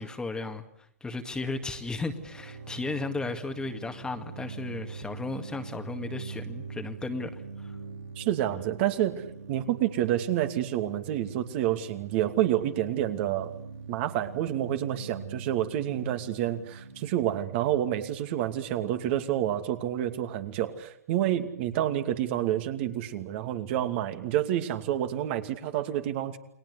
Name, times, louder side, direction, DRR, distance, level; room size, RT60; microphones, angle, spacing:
voice 1, 0.0-7.8, left 3 dB, 10° left, 6 dB, 2.1 m, -35 dB
sound 1, 1.3-18.9, right 4 dB, 85° right, 4.6 m, -44 dB
voice 2, 8.2-9.2 9.5-13.5 13.9-26.4, right 12 dB, 45° right, 7 dB, 2.7 m, -28 dB
29.5 x 21.5 x 8.3 m, 0.73 s
hypercardioid pair, 115°, 8 cm